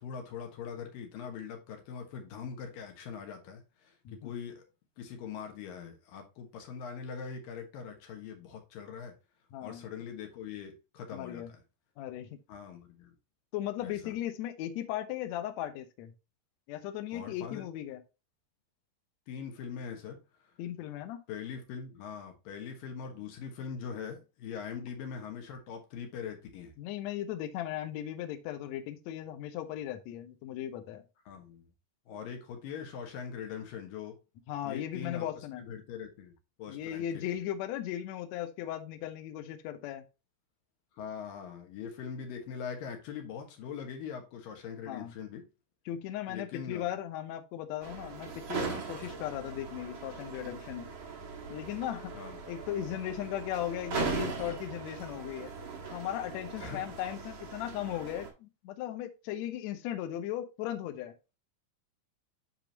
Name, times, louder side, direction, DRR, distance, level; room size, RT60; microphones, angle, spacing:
voice 1, 0.0-4.6 5.0-9.1 9.6-11.4 12.5-13.2 13.8-14.1 17.1-17.6 19.3-20.2 21.3-26.7 31.3-31.7 32.1-34.2 34.6-35.3 35.6-37.4 41.0-45.5 46.3-46.9 52.1-52.4 56.6-56.9, left 7 dB, 70° left, 3.0 m, -42 dB
voice 2, 9.5-9.9 11.1-11.5 12.0-12.4 13.5-16.1 16.7-18.0 20.6-21.2 24.8-24.9 26.8-31.0 34.5-35.7 36.7-40.0 44.9-45.1 45.9-50.9 51.5-52.2 52.5-55.5 55.9-61.1, left 12 dB, 90° left, 1.5 m, -37 dB
sound 1, 47.8-58.3, right 5 dB, 45° right, 1.9 m, -39 dB
10.5 x 3.9 x 2.9 m
omnidirectional pair, 4.3 m